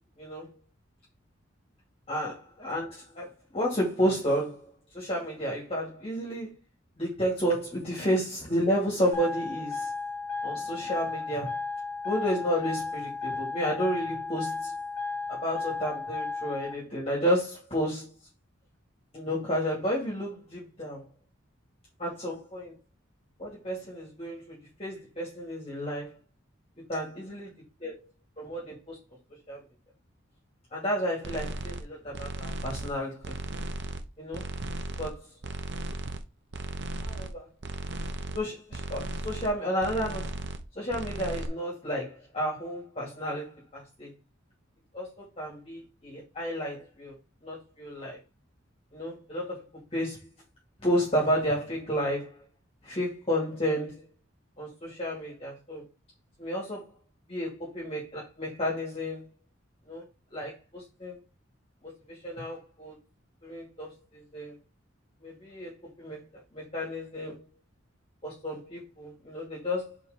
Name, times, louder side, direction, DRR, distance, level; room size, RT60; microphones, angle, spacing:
voice 1, 0.2-0.6 2.1-6.5 7.0-9.9 10.4-11.6 12.0-14.7 15.3-18.1 19.1-21.0 22.0-22.7 23.4-26.2 26.8-27.5 27.8-27.9 28.4-29.0 29.5-29.6 30.7-33.3 34.2-34.5 34.9-35.3 37.0-37.5 38.3-40.4 40.8-44.1 44.9-47.2 47.4-48.2 48.9-50.3 50.8-52.4 52.8-54.1 54.6-55.8 56.4-56.9 57.3-59.2 59.9-60.0 60.3-61.2 61.8-62.9 63.4-64.5 65.2-67.4 68.2-70.0, equal, 30° left, 2.5 m, -32 dB
sound 1, 9.1-16.7, left 4 dB, 5° left, 3.1 m, -34 dB
sound 2, 31.2-31.8 32.1-33.0 33.2-34.1 34.3-35.2 35.4-36.2 36.5-37.3 37.6-38.4 38.7-39.5 39.8-40.6 40.9-41.5, right 2 dB, 60° right, 0.8 m, -36 dB
5.0 x 4.7 x 5.1 m
head